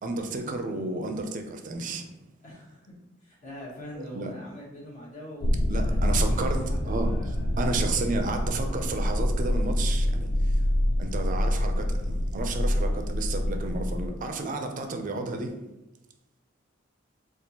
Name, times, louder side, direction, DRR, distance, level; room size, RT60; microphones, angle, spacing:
voice 1, 0.0-2.1 4.1-4.3 5.7-7.1 7.6-10.6 11.0-15.6, right 3 dB, 40° right, 5 dB, 0.4 m, -32 dB
voice 2, 2.4-2.9 3.2-7.6, equal, 40° left, -5 dB, 1.0 m, -43 dB
sound 1, 5.4-14.1, left 1 dB, 60° left, 0.4 m, -26 dB
4.3 x 2.4 x 2.8 m, 1.0 s
head